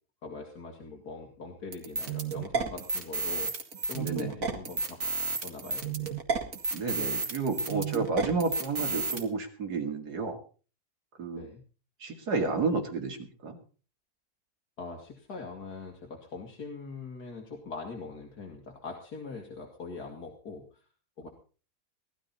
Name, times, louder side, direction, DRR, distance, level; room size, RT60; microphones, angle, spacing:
voice 1, 0.2-3.5 3.9-5.0 5.4-6.2 11.4-11.6 14.8-20.8 21.2-21.3, left 4 dB, 85° left, 0 dB, 2.7 m, -42 dB
sound 1, 1.7-9.2, right 4 dB, 60° right, 2.4 m, -32 dB
voice 2, 4.0-4.3 6.7-10.4 11.2-11.5 12.0-13.2 13.4-13.6, right 4 dB, 85° right, 6 dB, 2.7 m, -31 dB
18.0 x 13.0 x 4.1 m, 0.37 s
omnidirectional pair, 1.7 m